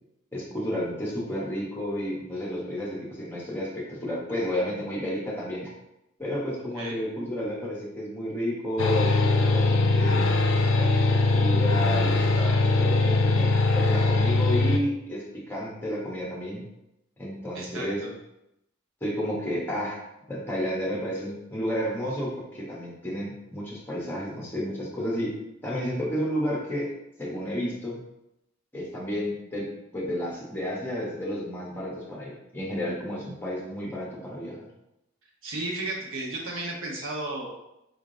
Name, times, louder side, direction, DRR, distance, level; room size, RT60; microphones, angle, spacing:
voice 1, 0.3-5.7 6.2-10.3 10.8-16.6 17.2-18.0 19.0-20.0 20.3-25.3 25.6-26.9 27.2-28.0 28.7-34.7, equal, 10° left, -4 dB, 0.9 m, -31 dB
sound 1, 8.8-14.8, left 3 dB, 75° left, 0.4 m, -21 dB
voice 2, 17.5-18.1 35.4-37.5, right 2 dB, 80° right, -2 dB, 1.0 m, -33 dB
3.8 x 3.5 x 2.6 m, 0.85 s
head